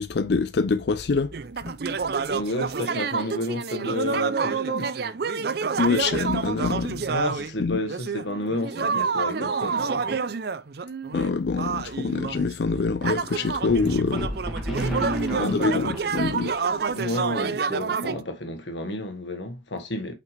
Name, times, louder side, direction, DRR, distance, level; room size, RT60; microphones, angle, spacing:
voice 1, 0.0-1.3 5.8-7.1 7.6-7.8 11.1-14.3 15.4-16.5, left 4 dB, 60° left, 0.4 m, -25 dB
sound 1, 1.3-7.5 7.9-18.2, right 5 dB, 55° right, 0.5 m, -28 dB
voice 2, 2.2-4.9 7.1-10.2 14.7-15.9 17.0-20.1, left 1 dB, 75° left, 1.6 m, -31 dB
sound 2, 13.7-17.2, equal, ahead, 2.2 m, -34 dB
6.1 x 5.9 x 3.3 m
head